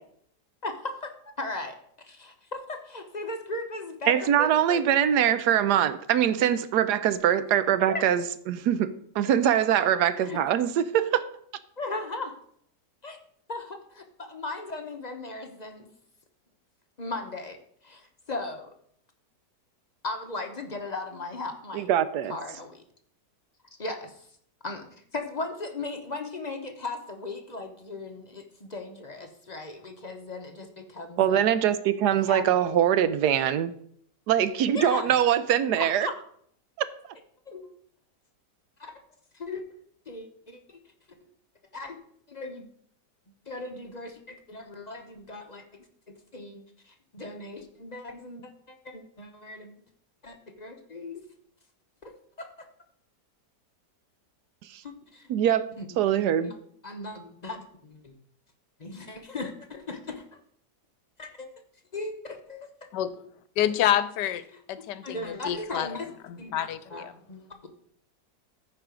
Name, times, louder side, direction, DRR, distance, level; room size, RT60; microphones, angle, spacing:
voice 1, 0.6-1.1 1.4-1.8 2.0-4.8 5.3-5.4 7.9-8.0 10.2-10.4 11.8-12.4 13.0-13.2 13.5-15.9 17.0-18.7 20.0-21.9 22.3-22.8 23.8-24.3 24.6-24.9 25.1-31.4 32.1-32.6 34.7-35.2 35.8-36.1 37.5-37.6 38.8-38.9 39.3-39.6 40.1-40.8 41.7-42.0 42.3-42.7 43.5-45.6 46.1-49.7 50.2-51.2 52.0-52.7 54.8-55.3 55.8-55.9 56.4-56.5 56.8-58.1 58.8-60.2 61.2-61.6 61.9-62.9 65.0-66.1 66.4-67.7, left 2 dB, 35° left, 0.7 m, -37 dB
voice 2, 4.1-11.2 21.7-22.3 31.2-33.7 34.3-36.1 54.7-54.8 55.3-55.6 56.0-56.5, right 10 dB, 75° right, 1.1 m, -23 dB
voice 3, 63.6-65.9 66.2-67.1, left 11 dB, 80° left, 1.3 m, -28 dB
14.0 x 4.9 x 5.1 m
omnidirectional pair, 1.8 m